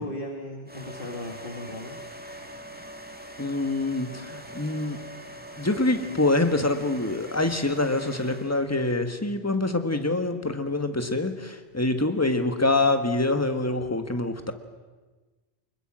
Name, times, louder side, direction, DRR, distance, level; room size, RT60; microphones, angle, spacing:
voice 1, 0.0-2.0, left 1 dB, 55° left, 1 dB, 2.2 m, -36 dB
sound 1, 0.7-8.8, equal, 10° right, 2.0 m, -42 dB
voice 2, 3.4-5.0 5.6-14.5, left 2 dB, 15° left, 7 dB, 1.6 m, -25 dB
25.0 x 21.0 x 7.5 m, 1.3 s
omnidirectional pair, 1.1 m